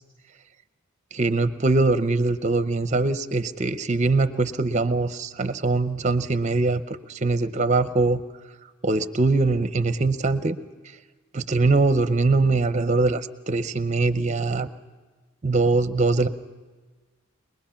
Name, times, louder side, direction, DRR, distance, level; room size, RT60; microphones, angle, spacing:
voice 1, 1.1-8.2 8.8-10.6 11.3-14.7 15.4-16.3, right 3 dB, 35° right, 11 dB, 0.7 m, -22 dB
22.5 x 21.0 x 5.8 m, 1.3 s
head